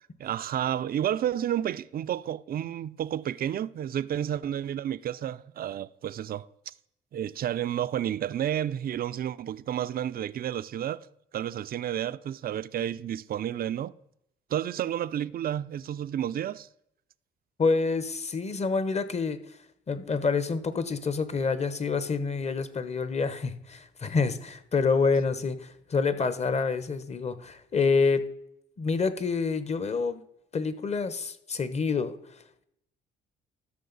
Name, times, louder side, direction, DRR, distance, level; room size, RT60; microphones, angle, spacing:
voice 1, 0.2-6.7 7.1-11.1 11.3-13.9 14.5-16.7, right 10 dB, 50° right, 0.4 m, -31 dB
voice 2, 17.6-19.4 19.9-28.2 28.8-30.2 30.5-32.2, left 4 dB, 35° left, 0.9 m, -27 dB
13.0 x 6.5 x 4.0 m
cardioid pair, 90°, 20 cm